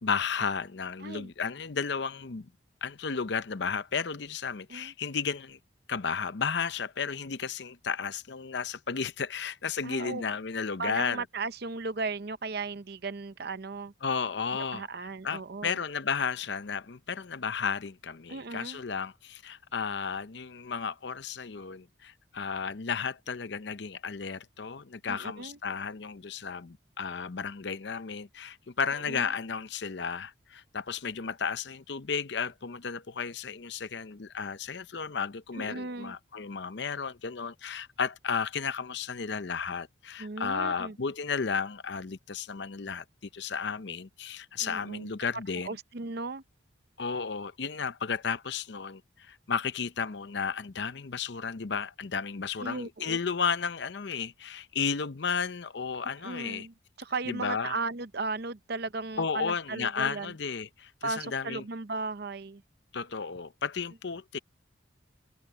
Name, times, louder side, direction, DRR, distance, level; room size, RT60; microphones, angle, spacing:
voice 1, 0.0-2.5 2.8-5.6 5.9-11.2 14.0-14.9 15.2-43.0 43.3-45.7 47.0-56.7 57.3-57.8 59.2-61.6 62.9-64.4, left 6 dB, 60° left, 0.7 m, -33 dB
voice 2, 1.0-1.3 4.7-4.9 9.8-10.2 10.8-13.9 14.5-15.8 18.3-18.8 25.1-25.6 28.9-29.3 35.6-36.1 40.2-41.0 44.6-45.1 45.6-46.4 52.6-53.2 56.2-60.3 61.0-62.6, right 3 dB, 55° right, 0.7 m, -36 dB
head